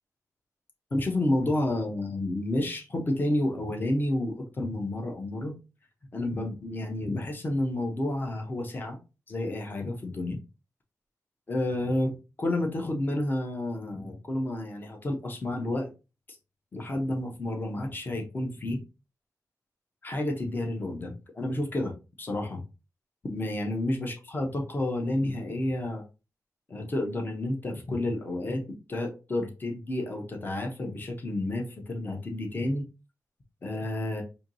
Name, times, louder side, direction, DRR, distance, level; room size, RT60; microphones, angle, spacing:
voice 1, 0.9-5.5 6.1-9.0 9.3-10.4 11.5-15.9 16.7-18.8 20.0-21.9 22.2-22.6 23.3-26.0 26.7-32.8 33.6-34.2, left 1 dB, 30° left, 3 dB, 0.8 m, -30 dB
4.5 x 2.6 x 2.6 m, 0.30 s
wide cardioid pair, 145°, 6 cm